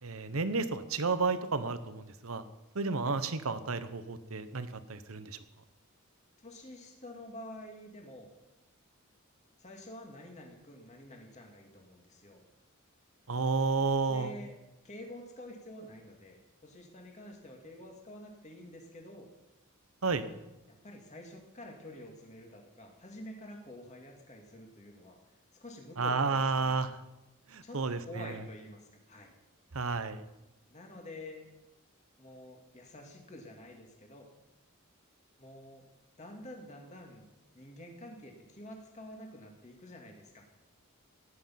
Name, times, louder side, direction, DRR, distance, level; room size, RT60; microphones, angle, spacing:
voice 1, 0.0-2.4 2.7-5.4 13.3-14.3 20.0-20.3 26.0-26.9 27.5-28.4 29.7-30.2, right 4 dB, 75° right, 12 dB, 1.0 m, -31 dB
voice 2, 6.4-8.3 9.6-12.4 14.1-14.6 14.8-16.4 16.6-19.3 20.7-26.8 27.6-29.3 30.7-31.4 32.2-34.3 35.4-35.8 36.2-37.3 37.5-40.6, left 1 dB, 35° left, 1 dB, 2.3 m, -48 dB
16.5 x 9.9 x 5.8 m, 0.98 s
head